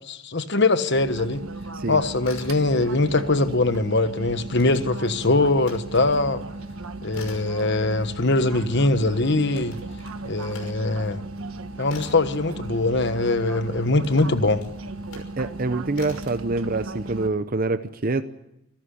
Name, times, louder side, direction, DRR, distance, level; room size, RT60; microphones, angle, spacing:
voice 1, 0.1-1.4 1.9-6.4 7.0-9.8 10.2-11.2 11.8-14.6, left 2 dB, 55° left, 11 dB, 1.3 m, -22 dB
sound 1, 0.9-17.3, right 2 dB, 80° right, 1.4 m, -36 dB
sound 2, 2.2-3.1 3.3-5.8 6.2-13.3 13.9-15.4 15.9-16.4, left 3 dB, 85° left, 5.8 m, -46 dB
voice 2, 15.4-18.2, right 3 dB, 40° right, 11 dB, 0.7 m, -26 dB
26.5 x 13.5 x 10.0 m, 0.87 s
head